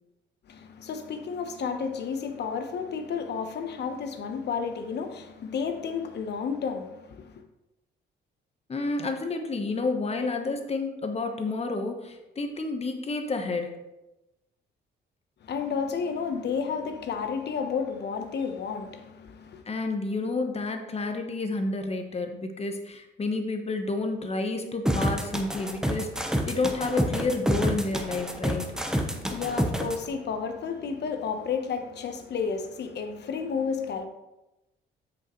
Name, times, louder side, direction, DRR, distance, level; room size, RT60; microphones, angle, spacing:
voice 1, 0.5-7.4 15.4-19.6 28.3-34.0, left 6 dB, 60° left, 1.0 m, -32 dB
voice 2, 8.7-13.8 19.7-28.7, left 3 dB, 30° left, 1.1 m, -30 dB
sound 1, 24.9-30.0, equal, 5° right, 0.9 m, -27 dB
7.6 x 6.3 x 3.1 m
cardioid pair, 90°, 20 cm